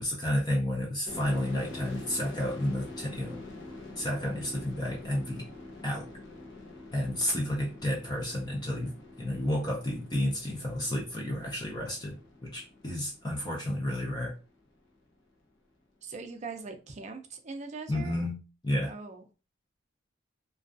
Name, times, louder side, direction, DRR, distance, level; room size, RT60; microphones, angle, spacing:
voice 1, 0.0-3.4 4.0-5.5 5.8-6.1 6.9-14.4 17.9-18.4 18.6-18.9, left 1 dB, 20° left, -2 dB, 0.5 m, -31 dB
sound 1, 1.1-14.5, left 2 dB, 65° left, 0.6 m, -46 dB
voice 2, 16.0-18.2 18.8-19.2, right 4 dB, 35° right, 5 dB, 0.4 m, -41 dB
2.4 x 2.3 x 2.4 m, 0.32 s
head